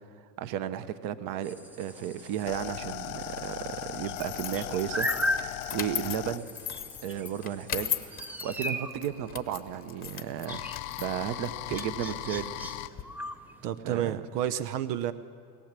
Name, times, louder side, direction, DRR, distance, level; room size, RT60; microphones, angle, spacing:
voice 1, 0.4-6.5 7.0-10.6 11.0-12.7 13.8-14.2, right 10 dB, 45° right, 13 dB, 1.0 m, -34 dB
sound 1, 1.4-13.6, equal, 5° right, 0.5 m, -38 dB
sound 2, 1.9-8.1 9.1-12.9, left 17 dB, 60° left, 0.7 m, -39 dB
sound 3, 4.2-13.0, left 9 dB, 20° left, 0.9 m, -38 dB
voice 2, 13.6-15.1, right 11 dB, 80° right, 13 dB, 0.9 m, -30 dB
21.5 x 17.0 x 7.4 m, 2.3 s
supercardioid pair, 130°, 46 cm